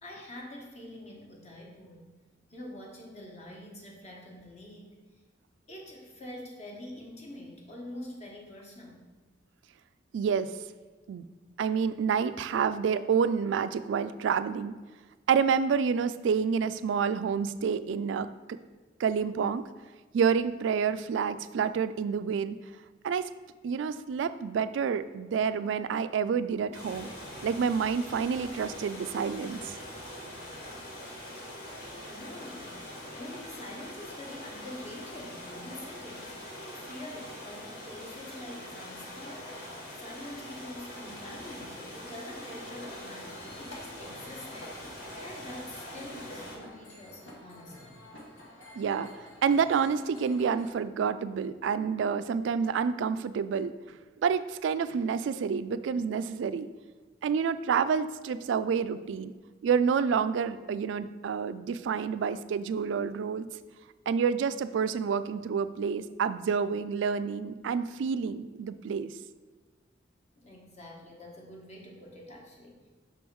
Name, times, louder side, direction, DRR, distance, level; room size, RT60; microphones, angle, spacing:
voice 1, 0.0-2.1 2.5-5.0 5.7-9.0 32.0-48.0 70.4-72.9, left 1 dB, 35° left, -1 dB, 1.1 m, -46 dB
voice 2, 10.1-10.5 11.1-11.2 11.6-14.7 15.3-18.3 19.0-19.6 20.1-22.6 23.0-23.3 23.6-27.1 27.4-29.7 48.8-49.1 49.4-53.7 54.2-56.7 57.2-59.3 59.6-63.5 64.1-69.1, right 6 dB, 70° right, 13 dB, 0.3 m, -28 dB
sound 1, 26.7-46.6, left 1 dB, 60° left, 1.5 m, -43 dB
sound 2, 42.6-50.7, left 1 dB, 80° left, 1.2 m, -50 dB
5.9 x 3.5 x 4.6 m, 1.4 s
head